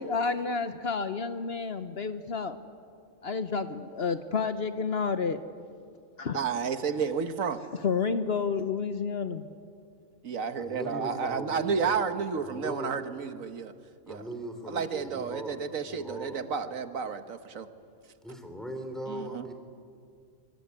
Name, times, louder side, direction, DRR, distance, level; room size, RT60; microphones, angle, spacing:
voice 1, 0.0-2.6 3.2-5.4 6.2-6.4 7.8-9.5, left 5 dB, 55° left, 10 dB, 1.1 m, -30 dB
voice 2, 6.3-7.6 10.2-13.7 14.1-14.2 14.7-17.7 19.1-19.4, right 6 dB, 90° right, 9 dB, 1.6 m, -31 dB
voice 3, 10.6-12.1 12.4-13.0 14.1-16.4 18.2-19.5, right 1 dB, ahead, 5 dB, 3.6 m, -39 dB
24.5 x 24.0 x 9.8 m, 2.3 s
omnidirectional pair, 1.4 m